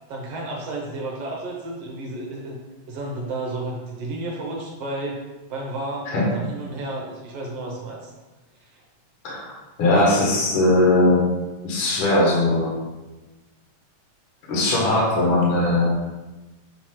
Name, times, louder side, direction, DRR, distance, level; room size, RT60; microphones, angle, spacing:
voice 1, 0.1-2.6 2.9-5.2 5.5-8.1 8.6-8.8, right 2 dB, 65° right, -1 dB, 1.6 m, -32 dB
voice 2, 9.2-11.3 11.6-12.8 14.5-15.9, left 2 dB, 50° left, -4 dB, 2.0 m, -19 dB
7.3 x 2.9 x 4.4 m, 1.1 s
omnidirectional pair, 3.4 m